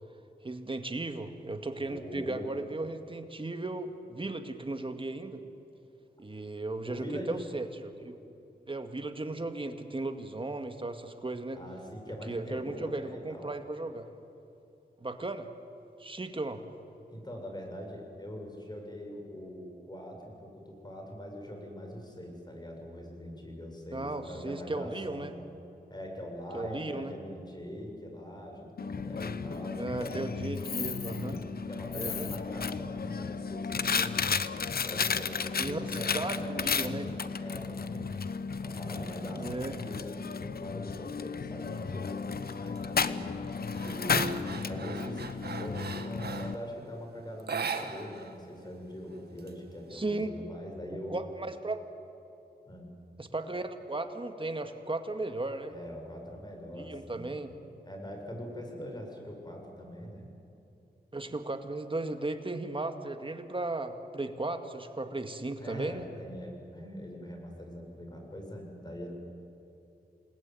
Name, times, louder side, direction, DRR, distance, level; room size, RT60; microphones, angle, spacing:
voice 1, 0.4-5.4 6.2-8.1 8.7-11.6 12.3-14.1 15.0-15.5 16.0-16.6 23.9-25.3 26.5-27.1 29.8-31.4 31.9-32.3 35.6-37.1 39.4-39.8 49.9-50.3 51.1-51.8 53.2-55.7 56.7-57.5 61.1-66.1, right 2 dB, 30° right, 6 dB, 2.1 m, -36 dB
voice 2, 1.9-2.5 6.9-7.4 11.5-13.5 17.1-25.3 25.9-30.2 31.1-34.4 34.8-38.2 38.6-44.3 44.6-51.2 52.7-52.9 55.7-57.3 57.8-60.3 65.6-69.1, equal, 25° left, 1 dB, 7.4 m, -42 dB
Coin (dropping), 28.8-46.5, left 5 dB, 65° left, 0.9 m, -34 dB
sound 1, 42.4-42.8 43.2-46.6 47.4-48.4 48.6-48.7 49.1-50.0, right 5 dB, 70° right, 1.9 m, -39 dB
28.5 x 20.0 x 9.3 m, 2.8 s
cardioid pair, 70°, 17 cm